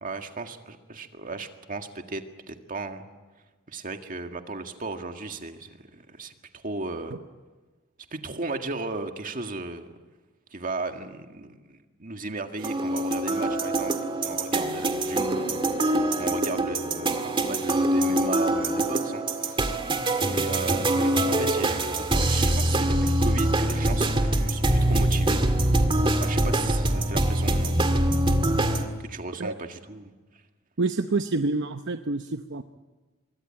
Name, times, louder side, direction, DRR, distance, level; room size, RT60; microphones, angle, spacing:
voice 1, 0.0-3.1 3.7-7.1 8.1-9.9 10.5-13.9 14.2-15.9 16.2-19.8 20.2-25.4 26.2-27.8 29.0-30.1, right 3 dB, 40° right, 6 dB, 1.9 m, -35 dB
Exploration Song, 12.6-28.8, right 1 dB, 25° right, 2.0 m, -24 dB
voice 2, 30.8-32.6, right 3 dB, 60° right, 8 dB, 0.8 m, -27 dB
25.5 x 23.5 x 8.8 m, 1.3 s
head